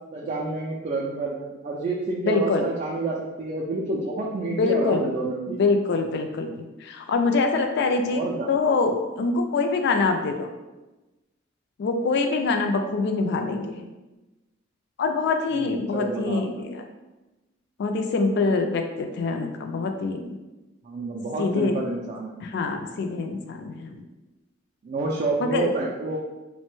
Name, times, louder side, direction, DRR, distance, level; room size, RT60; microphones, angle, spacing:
voice 1, 0.1-5.6 8.1-8.5 15.5-16.6 20.8-22.4 24.8-26.2, right 2 dB, 35° right, -3 dB, 0.3 m, -29 dB
voice 2, 2.2-2.7 4.5-5.1 5.5-8.2 8.5-10.5 11.8-13.8 15.0-16.8 17.8-20.4 21.4-21.8 22.4-24.0 25.4-25.7, left 3 dB, 60° left, 5 dB, 0.3 m, -25 dB
2.9 x 2.1 x 3.0 m, 1.1 s
head